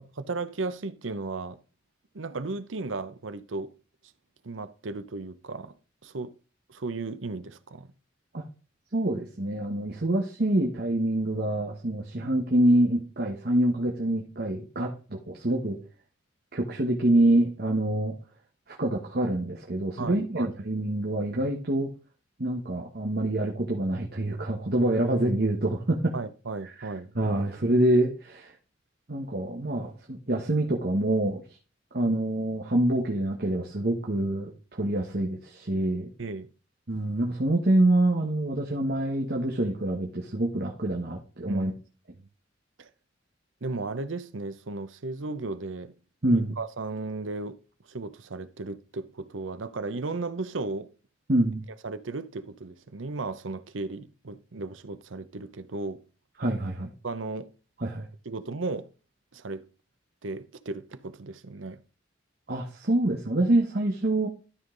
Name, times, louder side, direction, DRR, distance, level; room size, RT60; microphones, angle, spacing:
voice 1, 0.2-1.6 2.1-3.7 4.4-5.7 6.0-6.3 6.7-7.9 15.1-15.2 20.0-20.5 26.1-27.1 36.2-36.5 41.5-41.7 42.8-42.9 43.6-45.9 46.3-47.6 47.9-50.9 51.8-56.0 57.0-57.5 58.2-58.9 59.3-59.6 60.2-61.8, right 3 dB, 90° right, 0.8 m, -35 dB
voice 2, 8.9-15.8 16.5-18.1 18.7-21.9 22.4-26.1 27.1-28.5 29.1-31.4 31.9-36.1 36.9-41.7 46.2-46.6 51.3-51.6 56.4-56.9 57.8-58.1 62.5-64.3, right 1 dB, 55° right, 1.4 m, -26 dB
12.5 x 5.4 x 3.9 m
head